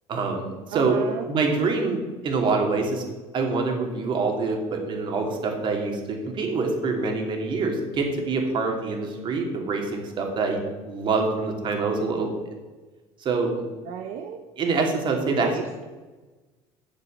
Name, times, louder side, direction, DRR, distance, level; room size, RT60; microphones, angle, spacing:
voice 1, 0.1-1.0 1.3-3.0 3.3-12.3 13.2-13.6 14.6-15.5, right 4 dB, 45° right, 3 dB, 2.8 m, -25 dB
voice 2, 0.7-1.3 13.8-14.4 15.4-15.8, right 8 dB, 70° right, 5 dB, 1.0 m, -33 dB
11.0 x 7.4 x 6.5 m, 1.2 s
cardioid pair, 120°, 12 cm